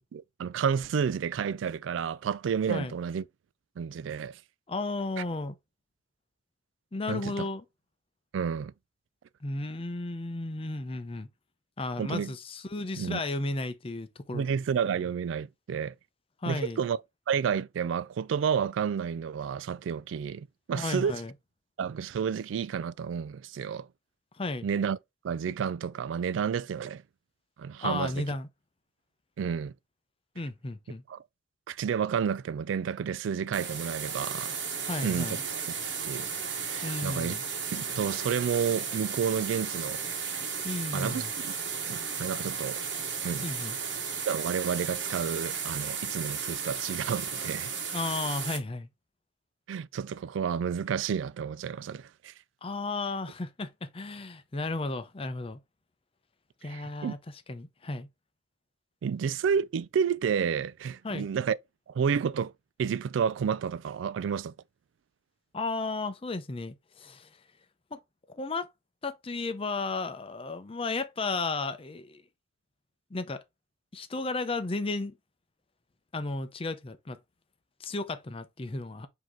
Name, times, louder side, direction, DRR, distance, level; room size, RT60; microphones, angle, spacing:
voice 1, 0.1-3.2 3.8-4.4 7.1-7.5 8.3-8.7 12.0-12.3 12.9-13.2 14.3-15.9 16.5-17.0 17.3-21.1 21.8-23.9 24.6-25.0 25.2-27.0 27.6-28.2 29.4-29.7 31.1-31.2 31.7-34.6 35.0-35.3 35.7-35.8 36.0-37.3 37.7-40.0 40.9-41.6 41.9-42.8 43.2-43.4 44.3-47.7 49.7-52.3 56.7-57.1 59.0-61.6 61.9-62.5 62.8-64.5, right 7 dB, 90° right, 0.3 m, -30 dB
voice 2, 4.7-5.6 6.9-7.6 9.4-11.3 11.8-14.4 16.4-16.8 20.7-21.3 24.3-24.7 27.8-28.5 30.4-31.0 34.8-35.4 36.8-37.4 40.6-41.3 43.4-43.8 47.9-48.9 52.6-55.6 56.6-57.2 57.5-58.1 61.0-61.3 65.5-67.3 67.9-68.0 68.3-68.7 69.0-72.2 73.1-73.4 73.9-75.1 76.1-77.2 77.8-79.1, left 3 dB, 30° left, 0.6 m, -34 dB
sound 1, 33.5-48.6, right 6 dB, 70° right, 1.3 m, -34 dB
5.0 x 2.9 x 3.6 m
head